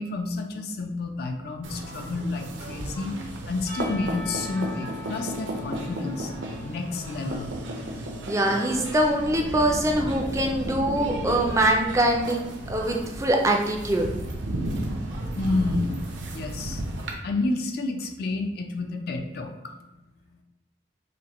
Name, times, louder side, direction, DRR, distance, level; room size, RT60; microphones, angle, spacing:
voice 1, 0.0-3.1 3.5-6.3 6.6-7.7 15.3-16.0 16.3-16.8 17.2-19.7, left 3 dB, 55° left, 5 dB, 0.4 m, -30 dB
sound 1, 1.6-17.1, right 1 dB, 80° right, 0.6 m, -34 dB
Percussion / Church bell, 3.7-7.8, left 1 dB, 85° left, 1.2 m, -43 dB
voice 2, 8.3-14.1, right 1 dB, 15° right, 1 dB, 0.3 m, -23 dB
sound 2, 8.9-14.2, equal, 40° left, 0.8 m, -38 dB
5.1 x 2.1 x 2.9 m, 0.96 s
head